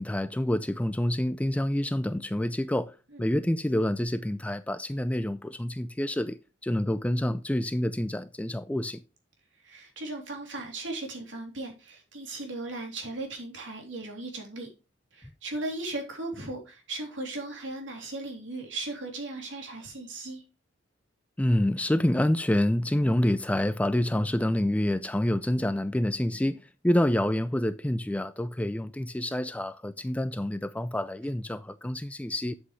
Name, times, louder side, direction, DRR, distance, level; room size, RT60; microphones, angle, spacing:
voice 1, 0.0-2.9 3.2-9.0 21.4-26.6 26.8-32.5, left 1 dB, 5° left, 0.4 m, -27 dB
voice 2, 9.6-14.7 15.1-20.4, right 2 dB, 70° right, 3.2 m, -37 dB
8.3 x 7.9 x 3.2 m
head